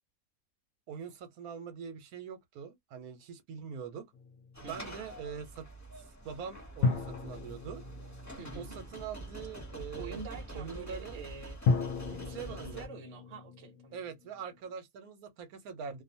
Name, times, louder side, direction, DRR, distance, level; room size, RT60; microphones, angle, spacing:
voice 1, 0.9-4.1 4.7-5.7 6.0-7.8 8.6-10.2 10.5-11.2 12.1-12.8 13.9-16.0, right 7 dB, 85° right, 1.2 m, -43 dB
sound 1, 4.1-5.1 6.8-9.2 11.7-14.7, left 4 dB, 70° left, 0.9 m, -35 dB
sound 2, 4.5-12.9, right 1 dB, 15° left, 1.0 m, -46 dB
voice 2, 4.6-5.0 8.4-8.7 9.9-11.6 12.3-13.9, right 4 dB, 60° right, 1.0 m, -46 dB
2.5 x 2.3 x 2.6 m
omnidirectional pair, 1.5 m